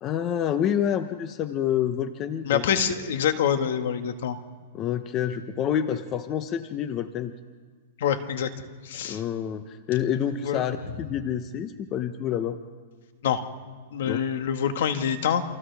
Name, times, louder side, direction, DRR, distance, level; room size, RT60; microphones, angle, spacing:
voice 1, 0.0-2.6 4.7-7.3 9.0-12.6 14.0-14.3, left 9 dB, 35° left, 9 dB, 1.0 m, -28 dB
voice 2, 2.4-4.4 8.0-8.5 8.8-9.2 10.4-10.6 13.2-13.4 13.9-15.4, left 8 dB, 70° left, 8 dB, 1.8 m, -25 dB
29.0 x 27.0 x 3.6 m, 1.5 s
hypercardioid pair, 130°, 0 cm